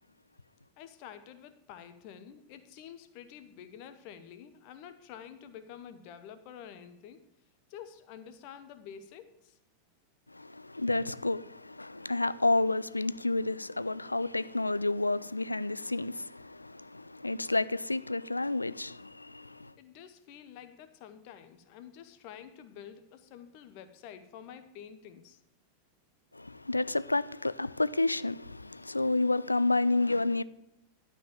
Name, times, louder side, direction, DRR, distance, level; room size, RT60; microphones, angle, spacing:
voice 1, 0.8-7.2 7.7-9.6 19.8-25.4, left 8 dB, 45° left, 0.9 m, -49 dB
voice 2, 10.3-19.7 26.3-30.4, left 2 dB, 85° left, 0.3 m, -30 dB
12.0 x 4.8 x 7.1 m
figure-of-eight pair, 90°, 0 cm